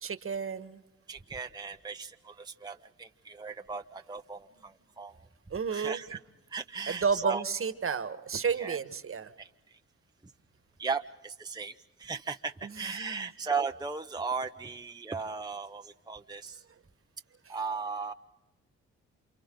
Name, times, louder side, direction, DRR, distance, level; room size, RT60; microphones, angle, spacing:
voice 1, 0.0-0.8 5.5-6.0 6.9-9.3 13.0-13.2, right 6 dB, 45° right, 12 dB, 1.5 m, -31 dB
voice 2, 1.1-5.2 5.7-6.2 6.5-7.4 8.5-8.8 9.4-9.5 10.8-16.6 17.5-18.1, right 5 dB, 15° right, 5 dB, 0.8 m, -36 dB
29.0 x 27.5 x 3.9 m, 1.0 s
supercardioid pair, 60°, 30 cm